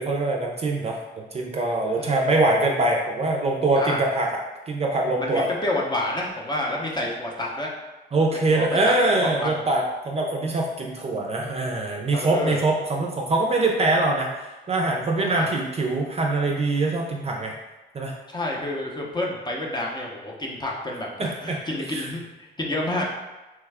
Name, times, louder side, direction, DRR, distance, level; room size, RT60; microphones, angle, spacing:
voice 1, 0.0-4.4 4.7-5.5 8.1-17.6 17.9-18.1 21.2-21.6 21.9-22.1, right 2 dB, 30° right, 0 dB, 0.5 m, -23 dB
voice 2, 5.2-7.7 8.5-8.9 9.4-9.5 12.1-12.6 15.2-15.5 18.3-23.0, left 1 dB, 20° left, -1 dB, 0.7 m, -29 dB
3.2 x 2.3 x 3.4 m, 1.1 s
cardioid pair, 90°, 20 cm